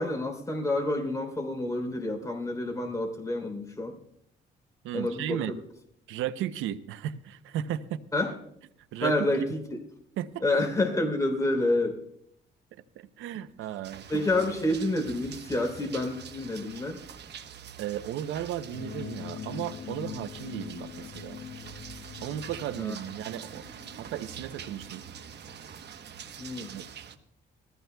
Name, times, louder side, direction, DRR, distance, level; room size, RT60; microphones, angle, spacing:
voice 1, 0.0-3.9 4.9-5.6 8.1-8.3 9.0-9.6 10.4-12.0 14.1-17.0 22.8-22.9 26.4-26.7, left 2 dB, 15° left, 2 dB, 3.3 m, -28 dB
voice 2, 4.8-5.6 6.1-8.0 8.9-9.2 10.2-10.4 13.0-14.0 17.8-21.4 22.2-23.6 24.0-25.0 26.6-26.9, right 11 dB, 90° right, 13 dB, 0.7 m, -35 dB
sound 1, 13.8-27.2, right 8 dB, 60° right, 1.1 m, -45 dB
sound 2, 18.7-25.5, left 8 dB, 55° left, 0.9 m, -43 dB
20.5 x 15.0 x 2.3 m, 0.73 s
cardioid pair, 90°, 20 cm